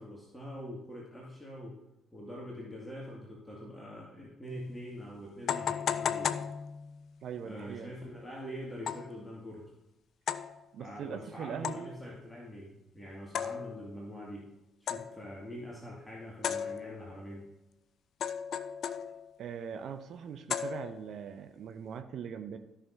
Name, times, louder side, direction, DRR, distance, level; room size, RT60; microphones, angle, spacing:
voice 1, 0.0-1.8 2.1-6.3 7.4-9.7 10.8-14.5 14.8-17.4, equal, 10° left, -4 dB, 2.2 m, -44 dB
sound 1, 4.5-4.6 5.5-7.1 8.9-9.2 10.3-10.6 11.6-12.1 13.3-14.0 14.9-15.3 16.4-17.2 18.2-19.4 20.5-21.2, left 8 dB, 55° left, 0.4 m, -35 dB
voice 2, 7.2-7.9 10.7-12.0 19.4-22.6, right 7 dB, 55° right, 7 dB, 0.6 m, -41 dB
14.0 x 6.3 x 2.7 m, 0.93 s
figure-of-eight pair, 45°, 0 cm